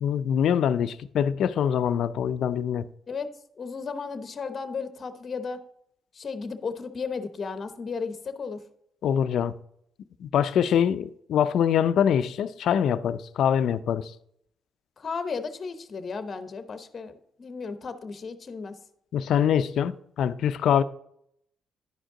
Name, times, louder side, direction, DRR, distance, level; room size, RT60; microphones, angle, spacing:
voice 1, 0.0-2.8 9.0-9.5 10.2-14.1 19.1-20.8, left 9 dB, 70° left, 0.4 m, -24 dB
voice 2, 3.6-5.6 6.1-8.6 15.0-18.7, left 5 dB, 40° left, 0.7 m, -34 dB
10.5 x 5.1 x 3.7 m
cardioid pair, 90°, 0 cm